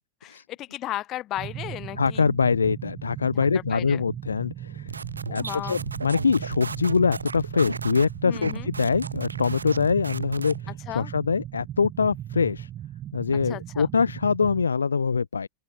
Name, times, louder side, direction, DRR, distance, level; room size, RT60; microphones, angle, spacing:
voice 1, 0.2-2.3 3.3-4.0 5.3-5.8 8.2-8.7 10.7-11.1 13.3-13.9, left 14 dB, 35° left, 3.7 m, -35 dB
sound 1, 1.4-14.7, right 11 dB, 30° right, 0.6 m, -37 dB
voice 2, 2.0-4.9 5.3-10.5 10.9-12.7 13.1-15.5, left 5 dB, 75° left, 1.2 m, -24 dB
sound 2, 4.9-10.6, right 4 dB, 80° right, 1.5 m, -35 dB
open air
figure-of-eight pair, 90°, 0 cm